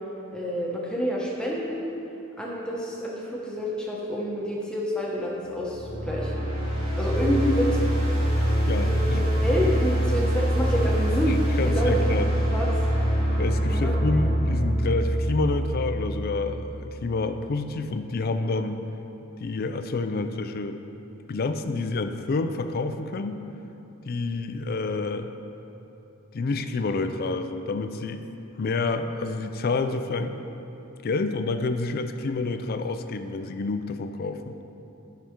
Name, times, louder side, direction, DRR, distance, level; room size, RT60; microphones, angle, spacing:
voice 1, 0.3-1.9 2.4-6.4 7.0-7.8 8.8-11.4 11.6-12.0 12.5-12.7 13.7-14.0, equal, 5° left, -5 dB, 1.0 m, -28 dB
sound 1, 5.5-16.6, equal, 85° right, 2.0 m, -24 dB
voice 2, 8.7-9.2 11.3-12.3 13.4-18.8 19.4-20.8 21.3-23.4 24.1-25.3 26.3-28.3 28.6-30.4 31.0-34.6, left 3 dB, 45° left, 8 dB, 0.4 m, -28 dB
12.5 x 5.8 x 3.7 m, 3.0 s
head